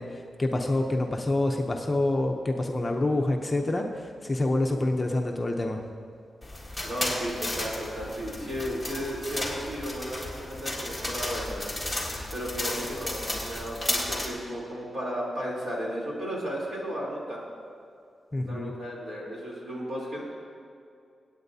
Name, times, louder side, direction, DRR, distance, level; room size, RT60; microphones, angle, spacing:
voice 1, 0.0-5.8 18.3-18.7, left 2 dB, 20° left, 2 dB, 0.7 m, -27 dB
sound 1, 6.4-14.3, left 1 dB, ahead, 1.9 m, -33 dB
voice 2, 6.8-11.7 12.3-17.4 18.4-20.2, equal, 50° right, -4 dB, 3.3 m, -34 dB
25.0 x 8.9 x 2.7 m, 2.4 s
wide cardioid pair, 155°, 0 cm